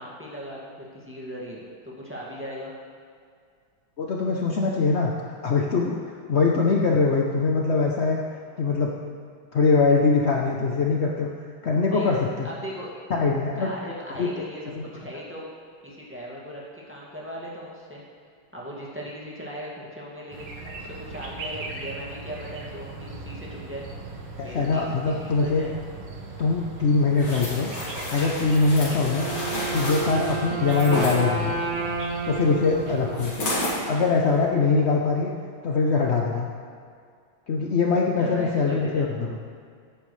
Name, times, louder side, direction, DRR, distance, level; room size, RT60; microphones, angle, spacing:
voice 1, 0.0-2.7 11.9-12.1 12.4-12.9 13.5-14.6 14.9-15.5 15.8-18.0 18.5-23.8 24.4-24.9 25.2-25.7 32.8-33.0 38.2-39.1, equal, 5° right, -6 dB, 1.9 m, -38 dB
voice 2, 4.0-5.1 5.4-8.2 8.6-8.9 9.5-11.3 11.6-12.5 13.1-13.7 14.2-14.3 14.8-14.9 24.4-25.6 26.4-27.7 28.1-29.3 29.7-31.6 32.3-33.3 33.9-35.3 35.6-36.5 37.5-39.4, left 4 dB, 70° left, -1 dB, 0.6 m, -22 dB
sound 1, 20.3-33.3, right 3 dB, 90° right, 2.1 m, -39 dB
sound 2, 27.2-31.2 33.2-33.8 34.3-34.5, left 1 dB, 85° left, 3.1 m, -31 dB
Wind instrument woodwind instrument, 29.0-33.9, right 4 dB, 45° right, 1.0 m, -31 dB
15.0 x 9.1 x 3.3 m, 2.2 s
omnidirectional pair, 2.2 m